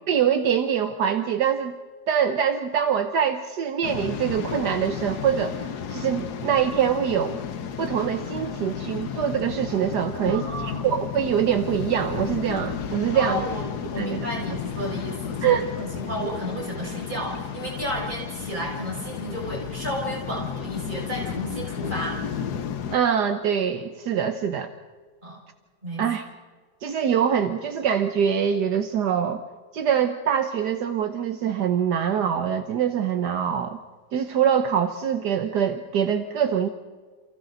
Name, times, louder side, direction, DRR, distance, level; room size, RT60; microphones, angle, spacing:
voice 1, 0.1-1.7 2.1-7.4 7.8-10.5 10.8-13.5 14.0-14.4 15.4-15.7 22.9-24.7 26.0-26.2 26.8-29.4 29.7-33.8 34.1-36.7, right 8 dB, 75° right, 7 dB, 1.6 m, -24 dB
Waves surf, 3.8-23.0, left 7 dB, 70° left, 1.6 m, -33 dB
voice 2, 10.3-10.9 13.1-13.6 13.9-22.2 25.2-25.4 25.8-26.0, equal, 25° right, -3 dB, 6.6 m, -32 dB
30.0 x 28.5 x 4.0 m, 1.5 s
omnidirectional pair, 1.8 m